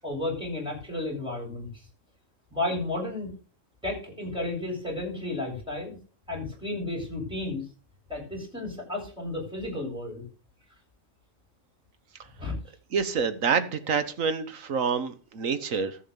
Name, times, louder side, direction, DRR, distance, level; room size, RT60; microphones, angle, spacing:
voice 1, 0.0-1.7 2.5-3.3 3.8-6.0 6.3-7.6 8.1-10.2 12.4-12.5, left 2 dB, 5° right, -2 dB, 8.0 m, -32 dB
voice 2, 12.9-16.0, right 6 dB, 85° right, 10 dB, 1.6 m, -27 dB
14.5 x 6.5 x 7.1 m, 0.36 s
omnidirectional pair, 1.4 m